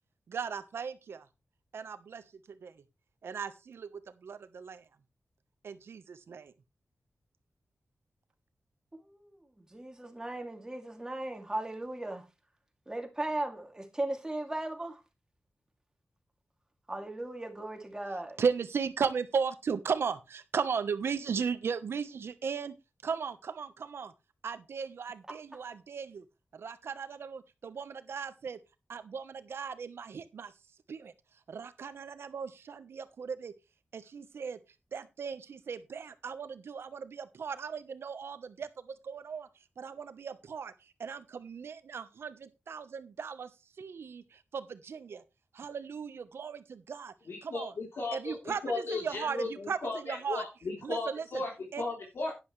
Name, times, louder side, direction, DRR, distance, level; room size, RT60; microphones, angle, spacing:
voice 1, 0.3-1.2 1.7-2.2 2.6-2.7 3.2-3.9 4.2-4.8 5.6-6.5 18.4-22.8 23.0-24.1 24.4-26.0 26.6-27.4 27.8-28.6 28.9-30.5 30.9-31.1 31.5-33.5 33.9-34.6 34.9-39.5 39.8-40.7 41.0-43.5 43.8-45.2 45.5-47.1 47.4-47.7 48.1-50.4 50.8-51.2 51.7-51.8, right 6 dB, 85° right, 1.1 m, -36 dB
voice 2, 9.1-12.3 12.9-15.0 16.9-18.4, right 1 dB, 15° right, 2.7 m, -37 dB
voice 3, 47.3-52.3, left 3 dB, 75° left, 3.6 m, -36 dB
11.5 x 10.5 x 3.3 m
wide cardioid pair, 115°, 4 cm